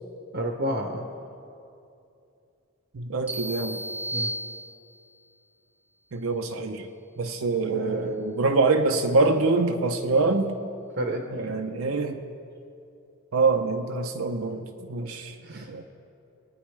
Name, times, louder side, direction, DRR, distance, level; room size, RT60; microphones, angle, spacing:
voice 1, 0.3-1.1 4.1-4.3 7.7-8.1 11.0-11.6 15.1-15.2 15.4-15.7, right 1 dB, 50° right, 3 dB, 0.8 m, -31 dB
voice 2, 2.9-3.8 6.1-6.9 7.2-10.6 11.3-12.2 13.3-15.8, right 3 dB, 80° right, 5 dB, 0.6 m, -25 dB
sound 1, 3.3-5.2, right 1 dB, 5° right, 0.6 m, -34 dB
21.5 x 9.2 x 3.2 m, 2.6 s
head